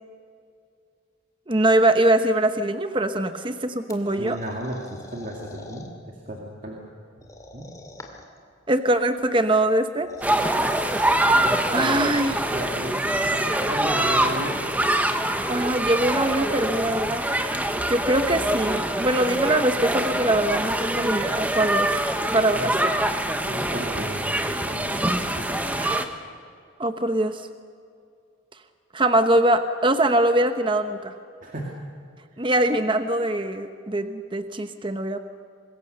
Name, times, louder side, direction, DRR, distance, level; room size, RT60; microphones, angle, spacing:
voice 1, 1.5-4.4 8.7-10.1 11.7-12.5 15.5-17.2 17.9-22.0 22.3-22.9 25.8-26.1 26.8-27.5 28.9-31.1 32.4-35.2, right 1 dB, 25° right, 8 dB, 0.9 m, -22 dB
sound 1, 3.9-5.9 7.2-8.4 9.8-11.3, left 2 dB, 15° left, 2.3 m, -44 dB
voice 2, 4.2-5.9 6.3-6.8 7.5-7.7 10.2-10.3 11.4-12.1 12.5-14.6 22.5-22.8 23.4-26.0 31.4-31.6, right 1 dB, 40° right, -1 dB, 2.4 m, -35 dB
sound 2, 10.2-26.0, right 1 dB, 10° right, 1.1 m, -24 dB
25.5 x 21.5 x 6.7 m, 2.4 s
head